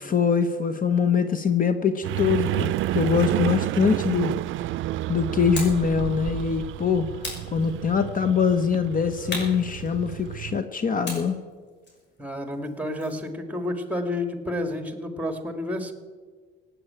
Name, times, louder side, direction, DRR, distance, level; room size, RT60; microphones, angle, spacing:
voice 1, 0.0-4.3 5.1-7.1 7.5-11.4, left 6 dB, 45° left, 9 dB, 1.1 m, -23 dB
sound 1, 2.0-10.6, right 15 dB, 80° right, 0.4 m, -30 dB
sound 2, 5.6-5.9 7.2-8.1 9.3-10.4 11.0-13.3, left 2 dB, 60° left, 6.1 m, -37 dB
voice 2, 12.2-15.9, left 1 dB, 5° right, 6 dB, 2.3 m, -30 dB
17.0 x 8.7 x 8.9 m, 1.5 s
cardioid pair, 90°, 20 cm